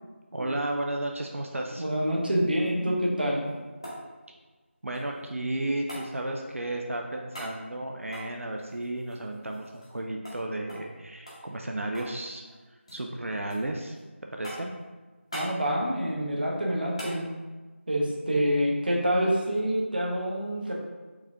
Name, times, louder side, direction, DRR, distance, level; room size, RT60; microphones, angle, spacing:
voice 1, 0.3-1.8 4.8-12.4 12.9-14.0 14.3-14.7, right 1 dB, 90° right, 2 dB, 0.5 m, -33 dB
voice 2, 1.8-3.5 15.3-17.3 17.9-20.7, equal, 45° right, -3 dB, 0.9 m, -27 dB
sound 1, 3.2-5.3 5.9-6.1 7.3-7.6 8.0-10.0 10.2-10.4 10.7-10.9 11.3-12.2 12.4-13.0 13.5-14.0 14.4-14.8 15.3-15.6 17.0-17.2 19.5-19.6, equal, 25° left, 0.8 m, -42 dB
4.7 x 2.8 x 3.6 m, 1.3 s
figure-of-eight pair, 180°, 7 cm